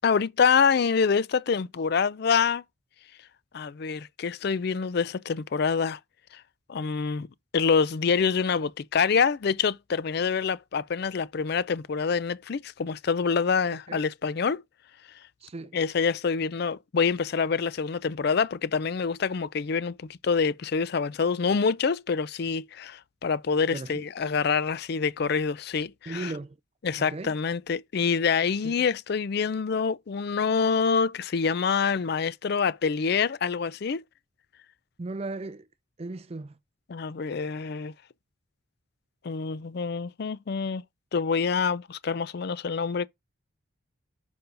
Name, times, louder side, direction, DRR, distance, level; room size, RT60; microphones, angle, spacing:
voice 1, 0.0-2.6 3.5-6.0 6.7-7.3 7.5-14.6 15.7-26.3 26.8-34.0 36.9-37.9 39.2-40.8 41.1-43.1, left 5 dB, 50° left, 0.4 m, -26 dB
voice 2, 15.4-15.8 23.7-24.0 26.1-26.6 27.0-27.3 28.6-28.7 35.0-35.7 36.0-36.6, right 2 dB, 30° right, 0.4 m, -36 dB
6.8 x 5.4 x 3.8 m
head